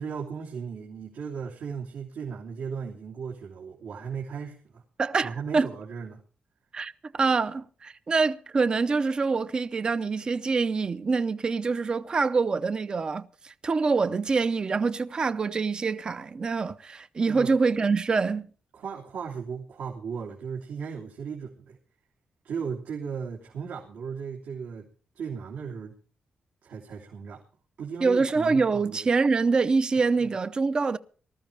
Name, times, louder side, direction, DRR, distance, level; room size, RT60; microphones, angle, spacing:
voice 1, 0.0-4.8 5.2-6.2 17.3-17.5 18.7-21.8 22.4-24.9 25.1-25.9 26.6-27.4 27.8-29.0, right 6 dB, 85° right, 3.0 m, -36 dB
voice 2, 5.0-5.7 6.7-18.5 28.0-31.0, right 4 dB, 30° right, 0.6 m, -25 dB
19.5 x 13.5 x 3.4 m
wide cardioid pair, 165°, 3 cm